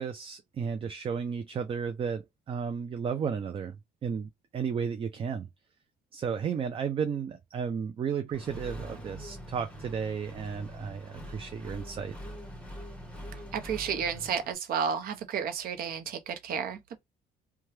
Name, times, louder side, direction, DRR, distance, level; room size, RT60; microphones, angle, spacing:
voice 1, 0.0-3.8 4.0-5.5 6.1-12.1, right 6 dB, 35° right, 0.4 m, -33 dB
Accelerating revving vroom, 8.3-14.5, equal, 5° left, 1.2 m, -43 dB
voice 2, 13.5-17.0, right 7 dB, 60° right, 0.8 m, -32 dB
2.8 x 2.3 x 3.1 m
cardioid pair, 110°, 17 cm